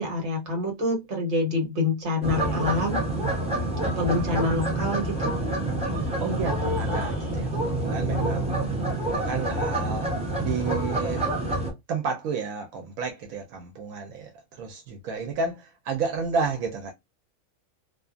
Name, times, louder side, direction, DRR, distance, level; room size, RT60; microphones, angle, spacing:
voice 1, 0.0-3.0 3.8-5.3, left 2 dB, 55° right, 1.4 m, -27 dB
sound 1, 2.2-11.7, right 1 dB, 5° right, 0.8 m, -27 dB
voice 2, 6.2-8.6 9.1-10.1 10.4-11.3 11.9-16.9, right 4 dB, 85° right, 1.1 m, -31 dB
2.6 x 2.4 x 2.3 m
omnidirectional pair, 1.4 m